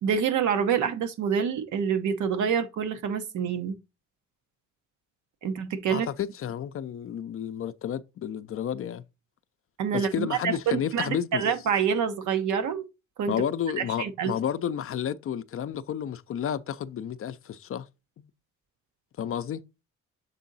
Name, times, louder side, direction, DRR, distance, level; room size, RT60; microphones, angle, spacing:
voice 1, 0.0-3.8 5.4-6.1 9.8-12.9 13.2-13.3 13.8-14.3, right 7 dB, 75° right, 0.9 m, -27 dB
voice 2, 5.9-9.0 9.9-11.4 13.3-17.9 18.2-18.3 19.2-19.6, left 9 dB, 50° left, 0.5 m, -31 dB
6.8 x 3.7 x 4.0 m
cardioid pair, 90°, 30 cm